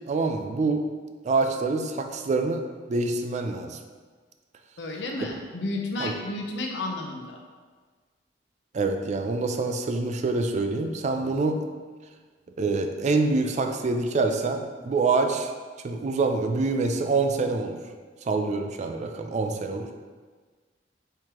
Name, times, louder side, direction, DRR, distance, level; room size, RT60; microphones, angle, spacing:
voice 1, 0.1-0.9 1.2-2.6 2.9-3.8 6.0-6.1 8.7-11.6 12.6-15.5 15.8-17.8 18.3-19.9, right 3 dB, 40° right, 5 dB, 0.3 m, -26 dB
voice 2, 4.8-7.4, left 2 dB, 85° left, 1 dB, 0.7 m, -32 dB
4.5 x 3.7 x 2.9 m, 1.5 s
head